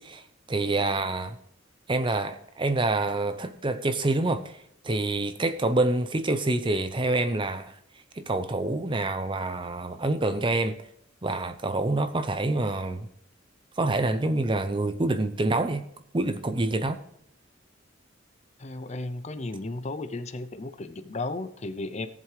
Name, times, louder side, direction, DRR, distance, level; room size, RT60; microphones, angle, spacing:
voice 1, 0.0-1.4 1.9-4.6 4.8-7.8 8.1-10.8 11.2-13.1 13.8-15.8 16.1-17.0, right 2 dB, 25° right, 10 dB, 0.6 m, -27 dB
voice 2, 18.6-22.1, left 2 dB, 35° left, 10 dB, 0.6 m, -34 dB
17.5 x 7.4 x 3.3 m, 0.76 s
head